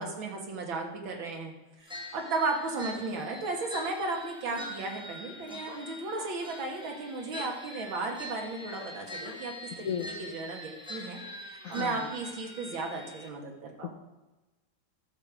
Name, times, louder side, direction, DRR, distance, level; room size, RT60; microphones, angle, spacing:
voice 1, 0.0-1.5 1.8-11.2 11.7-13.9, right 3 dB, 75° right, 2 dB, 2.3 m, -35 dB
sound 1, 1.9-13.3, left 1 dB, 5° right, 0.7 m, -44 dB
Bark, 2.3-2.9 4.5-4.7 5.6-6.4 7.3-7.6 8.0-8.2 8.7-9.4, left 5 dB, 50° left, 1.1 m, -49 dB
voice 2, 11.6-12.1 13.8-13.9, left 8 dB, 80° left, 7 dB, 0.7 m, -34 dB
12.5 x 6.7 x 4.9 m, 1.1 s
omnidirectional pair, 2.2 m